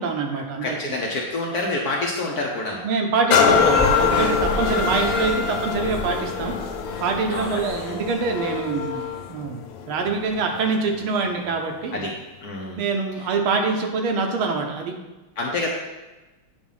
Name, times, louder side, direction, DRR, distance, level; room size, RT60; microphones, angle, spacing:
voice 1, 0.0-0.9 2.8-6.6 7.0-12.0 12.8-15.0, right 4 dB, 75° right, 3 dB, 1.7 m, -25 dB
voice 2, 0.6-2.8 4.5-4.9 7.3-8.0 11.9-12.1 12.4-12.9 13.2-13.3 15.4-15.7, left 2 dB, 65° left, -1 dB, 1.0 m, -28 dB
sound 1, 3.3-10.9 11.5-11.6, left 7 dB, 85° left, 1.6 m, -24 dB
sound 2, 3.5-8.1, left 1 dB, 25° left, 0.7 m, -29 dB
8.2 x 3.6 x 5.5 m, 1.1 s
omnidirectional pair, 2.4 m